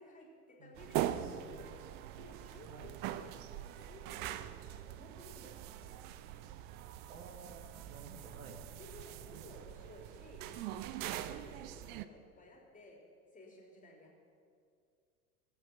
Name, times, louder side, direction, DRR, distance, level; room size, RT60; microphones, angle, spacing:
voice 1, 0.0-4.6 4.9-6.1 8.8-13.0 13.3-14.2, left 1 dB, 15° left, -1 dB, 3.4 m, -56 dB
voice 2, 0.6-1.3 2.7-2.9 7.0-8.7 11.1-11.6, right 3 dB, 65° right, 4 dB, 1.9 m, -54 dB
sound 1, 0.8-12.0, right 12 dB, 25° right, 0.3 m, -42 dB
21.5 x 7.8 x 6.1 m, 2.3 s
figure-of-eight pair, 80°, 46 cm